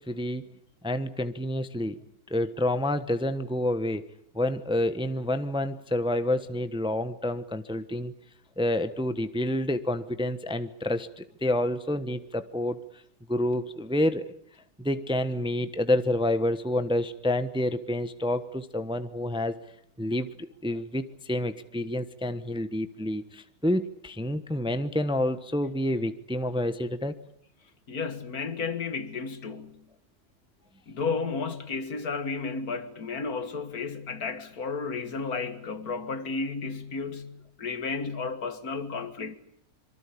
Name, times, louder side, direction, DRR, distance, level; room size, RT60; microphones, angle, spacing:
voice 1, 0.1-0.4 0.8-2.0 2.3-4.0 4.3-8.1 8.6-12.8 13.3-14.2 14.8-19.6 20.0-27.1, left 1 dB, 5° right, 1.0 m, -28 dB
voice 2, 27.9-29.9 30.9-39.3, left 4 dB, 70° left, 2.2 m, -33 dB
25.5 x 24.0 x 8.5 m
omnidirectional pair, 1.6 m